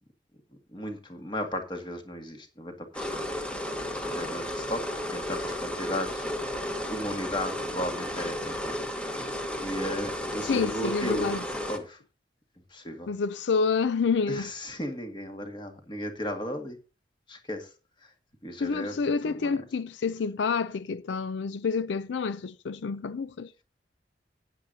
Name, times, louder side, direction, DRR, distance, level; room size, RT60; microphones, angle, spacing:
voice 1, 0.7-3.2 3.5-3.7 4.0-4.8 5.1-6.3 6.9-8.7 9.1-9.2 9.6-11.3 11.7-12.0 12.7-13.1 14.3-16.8 17.3-17.7 18.4-19.0 19.2-19.5, left 1 dB, 25° left, 1.9 m, -35 dB
sound 1, 2.9-11.8, left 1 dB, 5° left, 1.2 m, -33 dB
voice 2, 10.4-11.5 13.1-14.5 18.6-23.6, left 5 dB, 80° left, 0.4 m, -28 dB
15.5 x 9.3 x 2.8 m
head